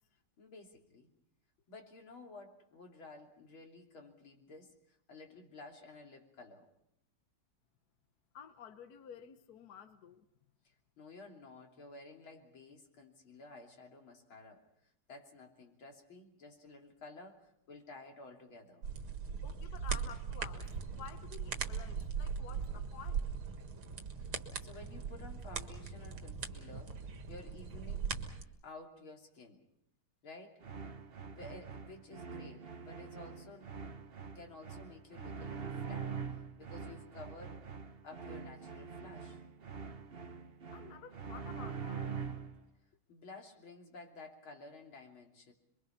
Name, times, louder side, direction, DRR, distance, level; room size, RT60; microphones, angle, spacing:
voice 1, 0.4-1.1 1.7-6.7 10.6-18.9 24.6-28.2 28.6-29.6 30.2-30.6 31.3-33.9 34.4-36.2 36.6-37.6 38.0-39.4 43.1-45.5, left 3 dB, 75° left, 3.8 m, -53 dB
voice 2, 8.3-10.3 19.4-23.3 40.7-42.1, left 8 dB, 55° left, 1.4 m, -52 dB
sound 1, 18.8-28.4, right 6 dB, 90° right, 2.6 m, -40 dB
sound 2, 30.6-42.6, right 6 dB, 40° right, 1.0 m, -44 dB
27.5 x 23.0 x 5.8 m
omnidirectional pair, 2.3 m